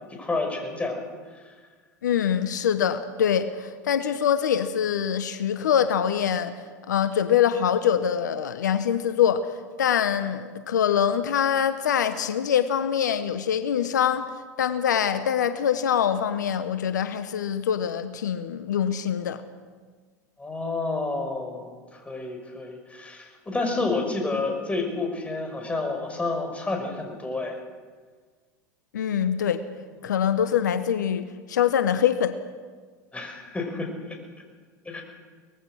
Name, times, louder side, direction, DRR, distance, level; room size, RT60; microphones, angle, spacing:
voice 1, 0.1-1.1 1.3-1.5 20.4-27.6 33.1-34.2 34.9-35.0, left 3 dB, 15° left, 3 dB, 5.5 m, -30 dB
voice 2, 2.0-19.4 28.9-29.6 30.0-32.3, left 8 dB, 85° left, 11 dB, 1.1 m, -24 dB
24.0 x 19.5 x 6.4 m, 1.5 s
hypercardioid pair, 90°, 9 cm